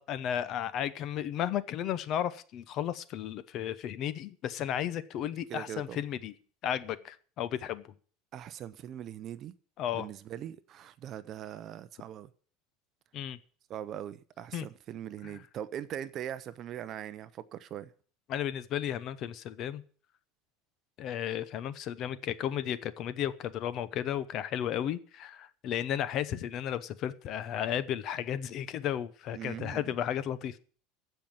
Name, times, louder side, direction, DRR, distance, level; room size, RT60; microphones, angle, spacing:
voice 1, 0.0-6.3 6.6-7.9 9.8-10.1 13.1-13.4 14.5-14.6 15.2-15.3 18.3-19.8 21.0-30.6, left 10 dB, 35° left, 0.8 m, -34 dB
voice 2, 5.5-6.0 8.3-9.5 9.9-12.3 13.7-17.9 29.3-29.9, right 10 dB, 30° right, 0.7 m, -41 dB
15.5 x 5.7 x 8.8 m
cardioid pair, 170°, 0 cm